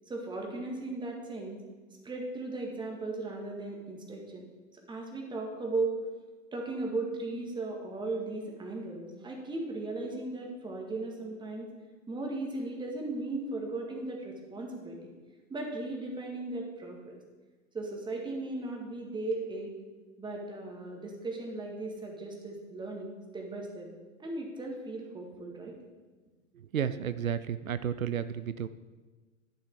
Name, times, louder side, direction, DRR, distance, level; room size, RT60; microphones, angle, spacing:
voice 1, 0.1-1.6 2.0-4.5 4.9-5.9 6.5-11.7 12.1-15.1 15.5-17.2 17.7-19.7 20.2-23.9 24.2-25.8, right 2 dB, 10° right, 0 dB, 2.0 m, -37 dB
voice 2, 26.7-28.7, right 8 dB, 85° right, 13 dB, 0.6 m, -32 dB
11.5 x 7.2 x 4.8 m, 1.3 s
figure-of-eight pair, 105°, 40 cm